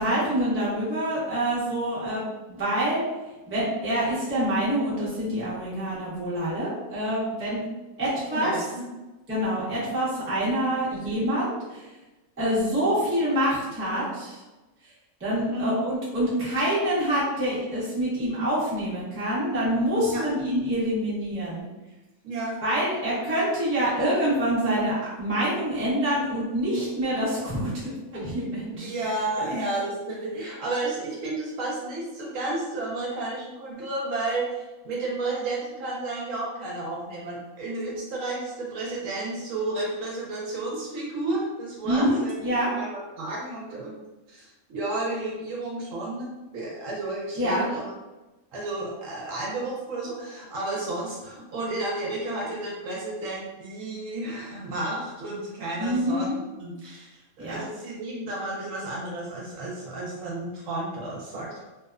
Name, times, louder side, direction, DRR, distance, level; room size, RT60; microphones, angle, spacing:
voice 1, 0.0-3.0 3.5-7.6 8.0-8.5 9.3-11.9 12.4-14.4 14.8-14.9 15.2-21.7 22.6-27.7 28.1-28.9 29.4-29.5 41.8-42.7 47.4-47.7 55.8-56.4 57.4-57.6, equal, 15° right, -9 dB, 0.6 m, -26 dB
voice 2, 8.3-8.6 11.0-11.1 15.5-15.8 20.1-20.2 22.2-22.6 28.8-42.4 42.7-44.0 44.3-47.8 48.5-57.2 57.5-61.5, right 2 dB, 70° right, -4 dB, 0.9 m, -32 dB
2.8 x 2.0 x 2.3 m, 1.1 s
omnidirectional pair, 1.5 m